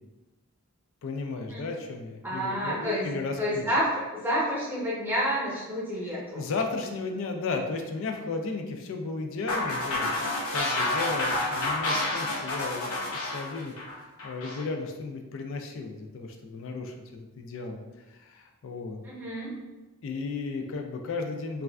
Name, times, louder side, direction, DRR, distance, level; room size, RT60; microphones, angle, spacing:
voice 1, 1.0-3.7 6.0-13.7 14.2-17.8 18.1-19.0 20.0-21.6, left 3 dB, 60° left, 4 dB, 0.3 m, -34 dB
voice 2, 2.2-3.1 3.4-6.4 19.0-19.5, equal, 10° right, -7 dB, 0.8 m, -29 dB
sound 1, 9.5-14.6, left 2 dB, 85° left, 0.7 m, -29 dB
3.1 x 2.4 x 2.3 m, 1.1 s
head